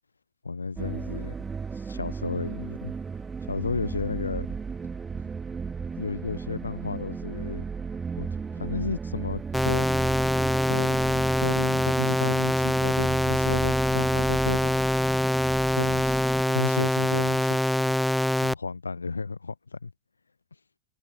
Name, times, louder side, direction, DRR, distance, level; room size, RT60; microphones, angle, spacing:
voice 1, 0.4-1.3 1.7-2.9 3.4-4.5 6.0-7.6 8.2-8.3 8.6-9.8 10.6-14.8 15.7-16.2 16.5-17.8 18.4-19.9, left 4 dB, 75° left, 2.6 m, -33 dB
sound 1, 0.8-16.4, right 5 dB, 15° right, 4.4 m, -35 dB
sound 2, 9.5-18.5, left 1 dB, ahead, 2.0 m, -24 dB
figure-of-eight pair, 90°, 0 cm